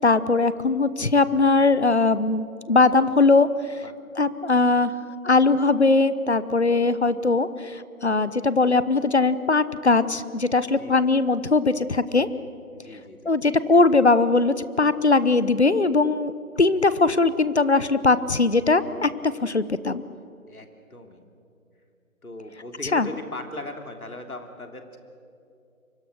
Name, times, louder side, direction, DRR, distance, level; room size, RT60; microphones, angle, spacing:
voice 1, 0.0-3.8 4.2-4.9 5.2-12.3 13.2-16.3 16.6-20.0 22.9-23.1, left 3 dB, 50° left, 15 dB, 1.0 m, -20 dB
voice 2, 10.8-11.1 12.7-13.3 20.5-21.2 22.2-25.0, left 2 dB, 80° left, 5 dB, 3.4 m, -38 dB
27.5 x 24.5 x 6.6 m, 2.6 s
figure-of-eight pair, 175°, 43 cm